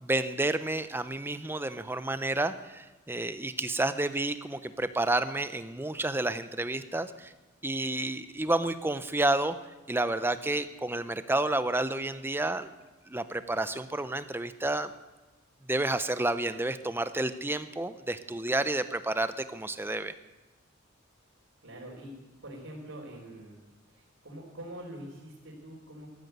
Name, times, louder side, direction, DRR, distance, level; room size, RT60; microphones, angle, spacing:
voice 1, 0.0-7.3 7.6-9.5 9.9-12.7 13.1-14.9 15.7-20.1, right 2 dB, 10° right, 11 dB, 0.6 m, -30 dB
voice 2, 21.6-22.1 22.4-23.6 23.9-26.1, right 1 dB, 75° right, -7 dB, 4.0 m, -44 dB
13.5 x 13.5 x 8.0 m, 1.2 s
head